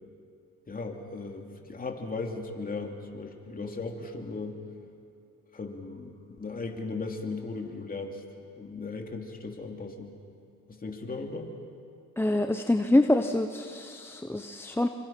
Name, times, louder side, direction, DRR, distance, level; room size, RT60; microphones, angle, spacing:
voice 1, 0.7-4.6 5.5-8.2 8.6-10.1 10.7-11.5, left 3 dB, 25° left, 2 dB, 2.8 m, -37 dB
voice 2, 12.2-14.9, left 1 dB, 5° left, 6 dB, 0.8 m, -25 dB
28.0 x 25.0 x 5.9 m, 2.5 s
cardioid pair, 105°, 32 cm